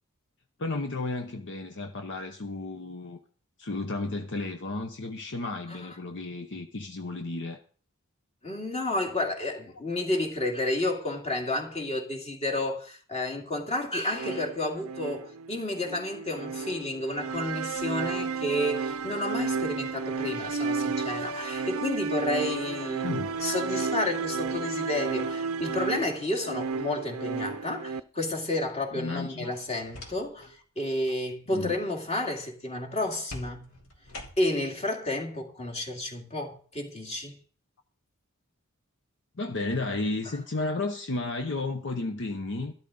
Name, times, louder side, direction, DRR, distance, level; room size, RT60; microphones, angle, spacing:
voice 1, 0.6-3.2 3.6-7.6 23.0-23.3 28.9-29.6 31.5-31.8 39.4-42.7, left 2 dB, 60° left, 0.9 m, -33 dB
voice 2, 8.4-33.7 34.4-37.4, left 1 dB, 30° left, 2.4 m, -31 dB
sound 1, 14.1-28.0, right 5 dB, 75° right, 0.6 m, -32 dB
sound 2, 29.5-30.5 30.9-31.2 33.3-34.7, left 2 dB, 75° left, 3.0 m, -44 dB
12.5 x 12.5 x 3.9 m
head